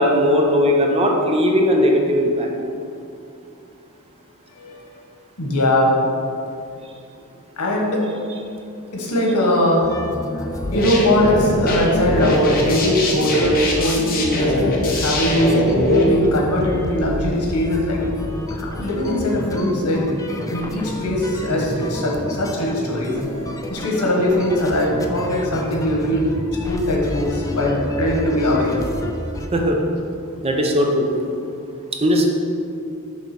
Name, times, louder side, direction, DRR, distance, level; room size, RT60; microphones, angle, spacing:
voice 1, 0.0-2.5 29.5-29.8 30.4-31.1 32.0-32.3, equal, 25° right, 1 dB, 0.6 m, -18 dB
voice 2, 5.4-6.0 7.6-8.1 8.9-9.9 10.3-15.6 16.1-18.0 18.5-20.1 20.5-23.2 23.7-28.9, left 1 dB, 85° left, -1 dB, 1.2 m, -21 dB
sound 1, 9.8-29.5, left 1 dB, 15° left, 0.4 m, -30 dB
sound 2, 10.6-16.0, left 1 dB, 40° left, 0.9 m, -21 dB
6.4 x 3.5 x 5.9 m, 2.6 s
head